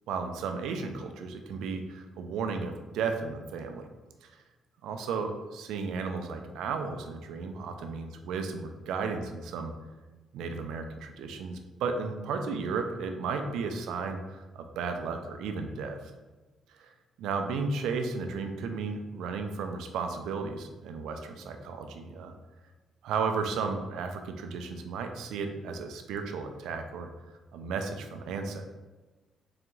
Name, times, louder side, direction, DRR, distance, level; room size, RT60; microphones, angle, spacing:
voice 1, 0.1-3.9 4.2-4.3 4.8-9.7 10.3-16.0 16.7-16.9 17.2-22.3 23.0-27.1 27.5-28.6, right 5 dB, 85° right, 6 dB, 0.4 m, -34 dB
3.9 x 3.4 x 3.1 m, 1.2 s
cardioid pair, 90°, 0 cm